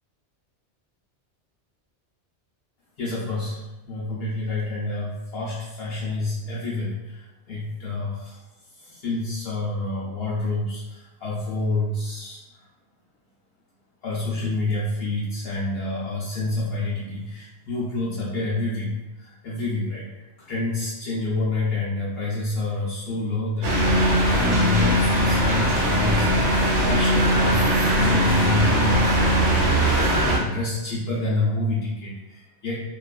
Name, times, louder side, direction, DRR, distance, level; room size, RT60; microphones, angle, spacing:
voice 1, 3.0-3.6 3.8-7.2 7.5-8.4 8.8-12.4 14.0-18.9 19.2-20.1 20.5-32.8, left 2 dB, 65° left, -7 dB, 0.8 m, -28 dB
sound 1, 23.6-30.4, equal, 90° right, 1.0 m, -20 dB
2.8 x 2.4 x 2.2 m, 1.1 s
omnidirectional pair, 1.2 m